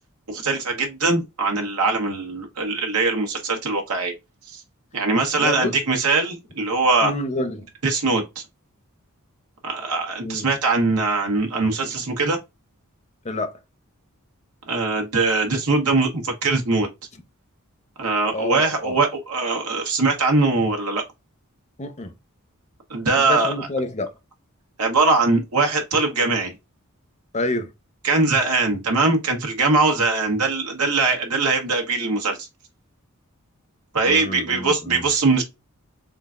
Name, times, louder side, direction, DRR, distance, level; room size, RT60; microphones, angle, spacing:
voice 1, 0.3-4.1 4.5-4.6 4.9-7.1 7.8-8.2 9.6-12.4 14.7-16.9 18.0-21.0 22.9-23.7 24.8-26.5 28.0-32.5 33.9-35.4, right 3 dB, 80° right, 1.1 m, -21 dB
voice 2, 5.4-5.7 7.0-7.7 10.2-10.5 13.2-13.5 18.3-19.0 21.8-22.1 23.2-24.1 27.3-27.7 34.0-35.1, left 1 dB, 30° left, 0.6 m, -28 dB
3.7 x 3.4 x 2.4 m
head